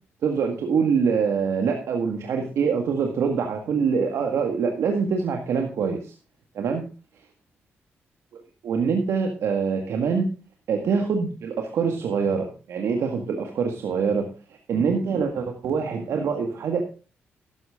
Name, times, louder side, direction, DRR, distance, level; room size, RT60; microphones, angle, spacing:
voice 1, 0.2-6.1 6.5-6.8 8.3-10.3 10.7-14.3 14.7-16.8, right 5 dB, 75° right, 3 dB, 1.9 m, -24 dB
13.0 x 10.5 x 3.7 m, 0.33 s
supercardioid pair, 60°, 5 cm